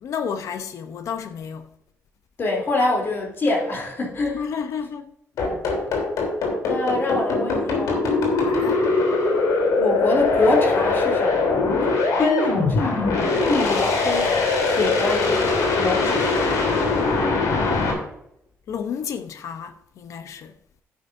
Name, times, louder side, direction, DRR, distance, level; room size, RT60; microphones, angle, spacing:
voice 1, 0.0-1.7 4.3-5.1 8.4-8.9 18.7-20.5, left 7 dB, 70° left, 0.7 m, -31 dB
voice 2, 2.4-4.4 6.4-8.1 9.8-11.5 12.2-13.1 13.5-14.3 14.7-16.7, left 2 dB, 40° left, 3.2 m, -25 dB
sound 1, 5.4-17.9, left 3 dB, 90° left, 3.4 m, -21 dB
11.5 x 9.8 x 2.6 m
cardioid pair, 135°, 6 cm